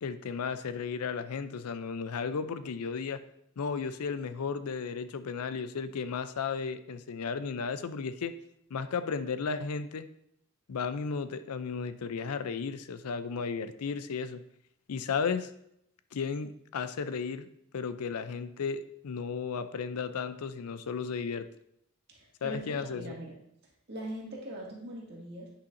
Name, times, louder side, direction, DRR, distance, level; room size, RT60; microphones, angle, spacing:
voice 1, 0.0-3.2 3.6-8.3 8.7-10.1 10.7-14.4 14.9-15.5 16.1-17.5 17.7-21.5 22.4-23.1, left 5 dB, 85° left, 12 dB, 0.5 m, -34 dB
voice 2, 22.1-23.4 23.9-25.5, right 1 dB, 50° right, -4 dB, 1.9 m, -41 dB
9.9 x 5.6 x 2.6 m, 0.74 s
head